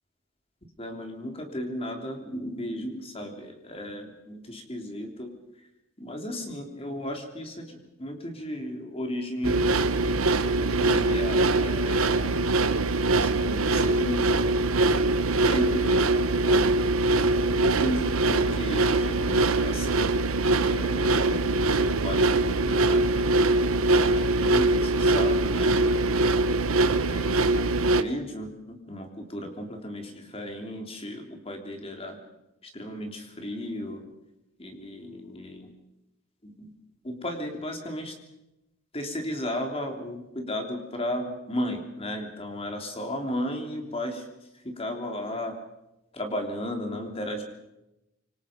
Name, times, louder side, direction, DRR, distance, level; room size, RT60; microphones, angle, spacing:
voice 1, 0.8-5.3 6.0-9.7 10.7-12.4 13.1-14.3 15.4-16.2 16.5-16.6 17.5-20.1 20.7-23.5 23.9-26.2 26.8-32.2 32.7-34.0 34.6-35.7 36.4-36.7 37.0-38.1 38.9-44.3 44.6-45.5 46.1-47.4, left 1 dB, 25° left, 3 dB, 3.4 m, -35 dB
sound 1, 9.4-28.0, right 2 dB, 85° right, 1.1 m, -23 dB
26.0 x 24.0 x 5.3 m, 0.92 s
head